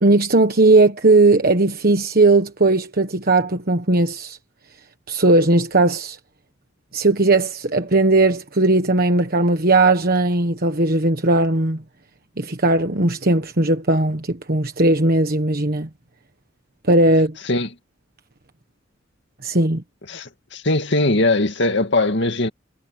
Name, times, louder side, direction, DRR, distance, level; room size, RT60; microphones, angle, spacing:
voice 1, 0.0-4.4 5.1-6.2 6.9-11.8 12.4-15.9 16.9-17.4 19.4-19.8, right 2 dB, 50° right, 1.4 m, -17 dB
voice 2, 20.1-22.5, left 2 dB, 65° left, 2.2 m, -20 dB
head